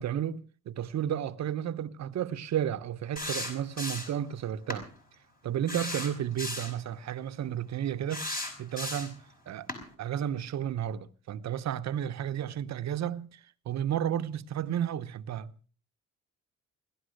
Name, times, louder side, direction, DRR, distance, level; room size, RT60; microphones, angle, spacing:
voice 1, 0.0-4.9 5.4-8.3 8.6-9.7 10.0-15.5, right 10 dB, 65° right, 1.0 m, -32 dB
sound 1, 3.2-4.2 4.7-4.8 5.7-6.8 8.1-9.2 9.7-9.8, left 1 dB, 30° left, 5.3 m, -35 dB
17.5 x 12.5 x 6.5 m
cardioid pair, 90°, 30 cm